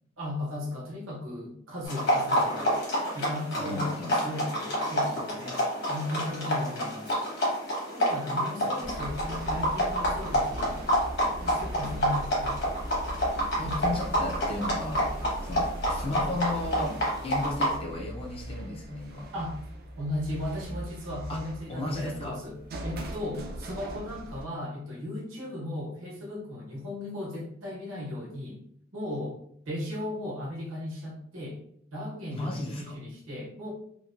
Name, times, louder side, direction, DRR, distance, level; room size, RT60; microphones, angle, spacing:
voice 1, 0.2-2.7 3.1-4.0 4.2-5.6 5.9-7.2 7.9-10.8 11.3-12.6 13.6-13.8 19.3-19.6 20.0-28.6 28.9-29.4 29.7-31.6 31.9-33.7, left 1 dB, 75° right, -3 dB, 1.0 m, -36 dB
sound 1, 1.9-17.8, equal, 55° left, 1.1 m, -29 dB
voice 2, 3.6-4.4 8.8-8.9 11.8-12.0 13.6-15.2 15.4-17.0 17.2-19.3 21.3-21.4 21.7-22.4 32.3-33.0, left 2 dB, 30° left, -1 dB, 0.4 m, -34 dB
sound 2, 8.8-24.4, right 1 dB, 50° right, 0.4 m, -39 dB
3.0 x 2.1 x 2.4 m, 0.68 s
head